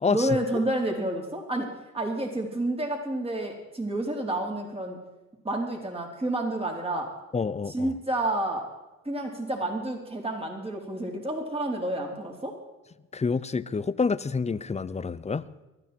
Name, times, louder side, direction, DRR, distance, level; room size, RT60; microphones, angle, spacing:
voice 1, 0.1-1.7 1.9-5.0 5.4-7.1 7.7-8.7 9.0-12.5, right 1 dB, 20° right, 1 dB, 4.0 m, -29 dB
voice 2, 7.3-7.9 13.1-15.4, left 4 dB, 20° left, 16 dB, 0.7 m, -28 dB
19.5 x 13.5 x 4.6 m, 1.1 s
cardioid pair, 90°, 30 cm